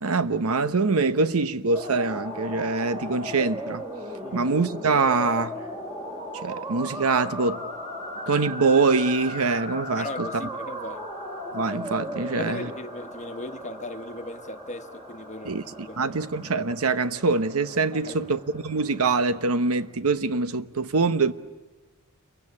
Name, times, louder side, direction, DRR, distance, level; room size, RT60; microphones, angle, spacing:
voice 1, 0.0-3.8 4.3-5.5 6.4-7.6 8.3-10.3 11.5-12.7 15.4-15.6 16.0-21.3, right 4 dB, 70° right, 1.0 m, -24 dB
sound 1, 1.7-19.8, equal, 20° right, 3.8 m, -37 dB
voice 2, 10.0-11.0 12.3-16.2 17.9-18.2, left 2 dB, 30° left, 1.3 m, -38 dB
29.0 x 23.5 x 8.5 m
head